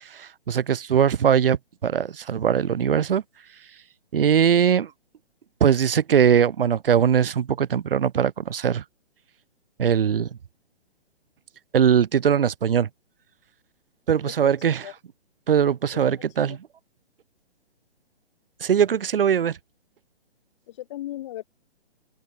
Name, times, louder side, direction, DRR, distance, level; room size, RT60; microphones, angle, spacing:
voice 1, 0.1-3.2 4.1-4.9 5.6-8.8 9.8-10.3 11.7-12.9 14.1-14.8 15.5-16.6 18.6-19.6, right 8 dB, 60° right, 0.5 m, -21 dB
voice 2, 20.7-21.4, left 14 dB, 30° left, 1.2 m, -37 dB
open air
figure-of-eight pair, 130°, 32 cm